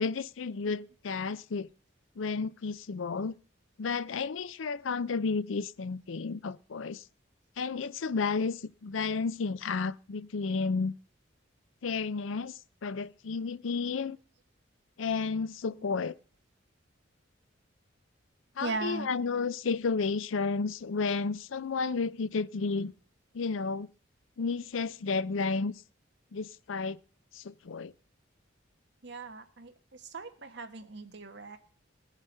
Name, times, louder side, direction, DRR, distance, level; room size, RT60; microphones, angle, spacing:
voice 1, 0.0-1.7 2.2-3.3 3.8-7.0 7.6-10.9 11.8-14.2 15.0-16.1 18.6-22.9 23.3-23.9 24.4-25.7 26.3-27.0 27.3-27.9, left 4 dB, 80° left, 0.5 m, -32 dB
voice 2, 15.6-16.0 18.6-19.1 19.3-19.5 29.0-31.6, right 3 dB, 60° right, 1.4 m, -39 dB
18.5 x 7.3 x 5.4 m
head